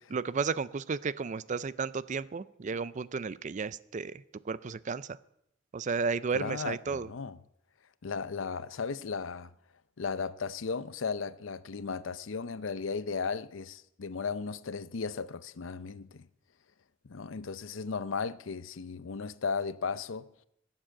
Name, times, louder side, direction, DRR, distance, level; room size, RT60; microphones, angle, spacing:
voice 1, 0.1-5.2 5.7-7.1, right 5 dB, 40° right, 0.4 m, -33 dB
voice 2, 6.3-7.4 8.0-9.5 10.0-16.3 17.0-20.3, left 5 dB, 75° left, 0.6 m, -35 dB
16.5 x 7.5 x 7.5 m
head